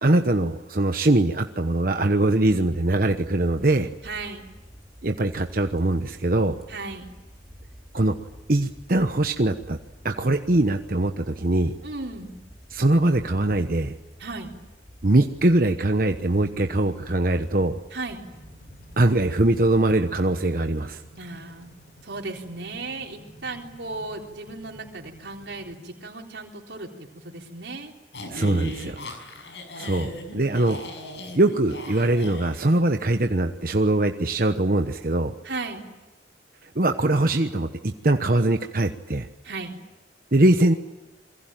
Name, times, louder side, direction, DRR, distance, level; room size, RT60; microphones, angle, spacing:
voice 1, 0.0-3.9 5.0-6.6 7.9-8.1 8.5-9.8 10.0-11.7 12.7-13.9 15.0-17.8 19.0-21.0 28.3-29.0 29.8-30.8 31.3-35.3 36.7-39.3 40.3-40.7, right 2 dB, 50° right, 6 dB, 1.1 m, -22 dB
sound 1, 2.4-20.1, equal, ahead, 3.9 m, -48 dB
voice 2, 4.0-4.4 6.7-7.1 11.8-12.3 14.2-14.6 17.9-18.2 21.2-21.7 22.0-26.9 27.1-27.9 35.4-35.9 39.4-39.8, right 3 dB, 75° right, 0 dB, 4.0 m, -35 dB
sound 2, 18.2-25.8, equal, 55° left, 6.3 m, -51 dB
sound 3, 28.1-32.8, left 1 dB, 75° left, 6.1 m, -38 dB
27.5 x 22.5 x 9.1 m, 1.1 s
head